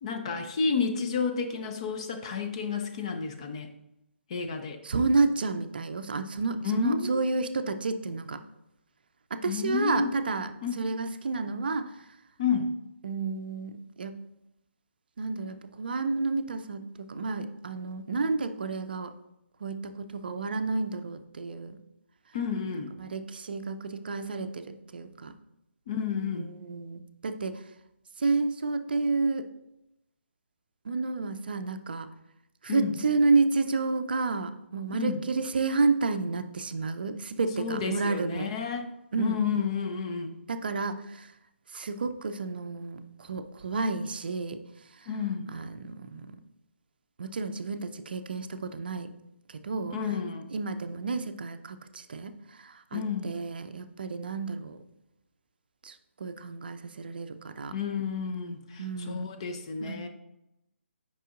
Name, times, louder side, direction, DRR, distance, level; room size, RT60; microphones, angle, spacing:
voice 1, 0.0-3.7 4.3-4.8 6.6-7.2 9.5-10.1 10.6-10.8 12.4-12.7 22.3-22.9 25.9-26.5 32.7-32.9 34.9-35.2 37.6-38.9 39.2-40.3 45.1-45.5 49.9-50.5 52.9-53.3 57.7-60.1, left 5 dB, 25° left, 5 dB, 0.5 m, -31 dB
voice 2, 4.8-8.4 9.3-12.0 13.0-14.2 15.2-19.1 19.6-21.8 23.0-25.3 26.3-27.6 28.2-29.5 30.8-32.1 32.6-38.5 39.1-39.4 40.5-41.3 41.7-44.6 45.0-45.1 45.5-46.4 47.2-49.1 49.5-49.9 50.5-54.8 55.8-57.7 58.8-59.3 59.8-60.0, right 3 dB, 45° right, 10 dB, 0.5 m, -30 dB
9.0 x 5.5 x 2.5 m, 0.86 s
figure-of-eight pair, 140°, 7 cm